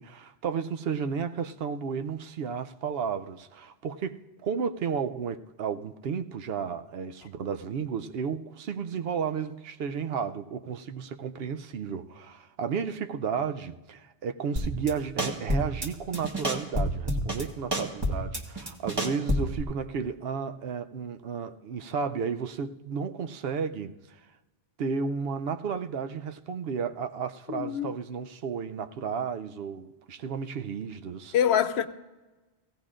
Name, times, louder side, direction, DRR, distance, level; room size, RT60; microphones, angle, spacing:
voice 1, 0.0-24.2 24.8-31.3, right 6 dB, 70° right, 0.8 m, -33 dB
sound 1, 14.6-14.9 15.2-15.9 16.1-17.4 17.7-19.6, equal, 25° right, 1.2 m, -28 dB
voice 2, 27.5-27.9 31.3-31.9, left 9 dB, 85° left, 0.9 m, -25 dB
17.0 x 16.5 x 2.5 m
omnidirectional pair, 1.1 m